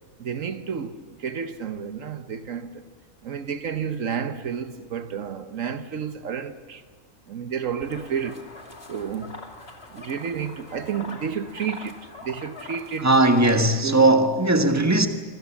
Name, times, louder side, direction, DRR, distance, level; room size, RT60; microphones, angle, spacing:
voice 1, 0.2-2.9 3.2-6.8 7.3-8.4 8.9-9.4 9.9-13.1 13.8-14.3, right 7 dB, 70° right, 1.3 m, -31 dB
sound 1, 7.8-13.8, left 2 dB, 45° left, 2.8 m, -43 dB
voice 2, 13.0-15.1, right 2 dB, 10° right, 1.5 m, -18 dB
26.0 x 25.5 x 7.2 m
omnidirectional pair, 1.4 m